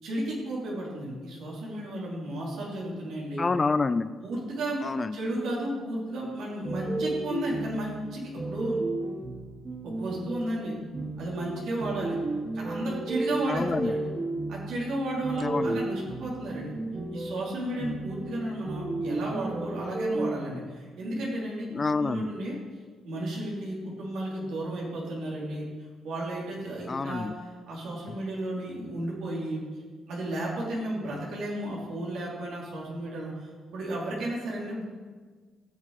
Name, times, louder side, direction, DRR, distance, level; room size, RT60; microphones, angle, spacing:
voice 1, 0.0-3.4 4.2-4.8 5.1-8.8 9.8-10.8 11.2-12.2 12.5-14.1 14.5-16.7 17.1-22.6 23.0-25.6 26.0-29.6 30.1-34.8, right 1 dB, 80° right, -5 dB, 3.3 m, -33 dB
voice 2, 3.4-4.2 4.8-5.2 13.5-13.9 15.4-15.8 21.7-22.3 26.9-27.3, left 4 dB, 30° left, 13 dB, 0.4 m, -27 dB
sound 1, 6.6-20.4, right 2 dB, 30° right, 1.0 m, -33 dB
15.5 x 6.4 x 4.1 m, 1.5 s
cardioid pair, 90°, 0 cm